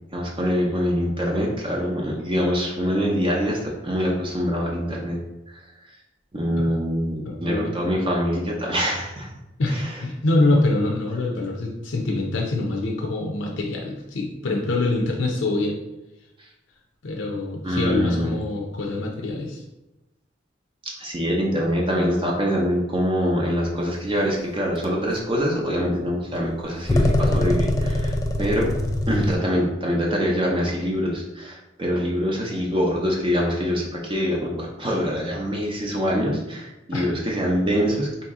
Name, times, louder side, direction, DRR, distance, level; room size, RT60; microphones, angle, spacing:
voice 1, 0.1-5.2 5.5-5.6 6.3-9.3 9.7-10.0 16.4-16.5 17.6-18.4 20.8-28.7 29.1-38.1, equal, 25° right, -2 dB, 0.6 m, -24 dB
voice 2, 7.2-7.9 9.6-15.8 17.0-19.6 36.9-37.0, left 2 dB, 75° left, 0 dB, 0.6 m, -25 dB
sound 1, 24.8-24.9 26.9-29.4, left 1 dB, 20° left, 0.4 m, -22 dB
4.1 x 2.8 x 3.6 m, 0.98 s
head